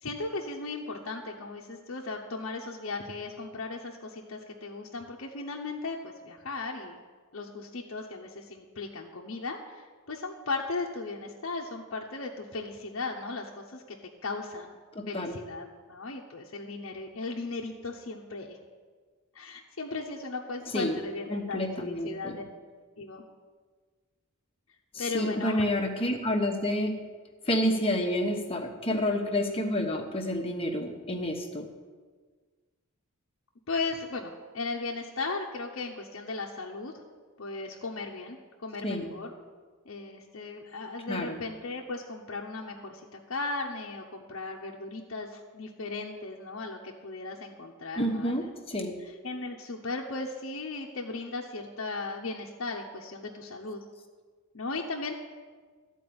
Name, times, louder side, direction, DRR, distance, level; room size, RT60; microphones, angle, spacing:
voice 1, 0.0-7.0 7.3-14.0 14.2-14.8 15.1-18.6 19.3-22.4 23.0-23.2 25.0-25.6 33.7-36.9 37.4-39.3 39.9-48.4 49.0-53.8 54.5-55.1, left 3 dB, 65° left, -1 dB, 0.9 m, -37 dB
voice 2, 14.9-15.4 20.7-21.0 21.3-22.4 24.9-27.0 27.5-31.7 38.8-39.1 41.1-41.4 48.0-48.9, left 1 dB, 25° left, 3 dB, 1.1 m, -29 dB
13.5 x 4.6 x 8.7 m, 1.5 s
head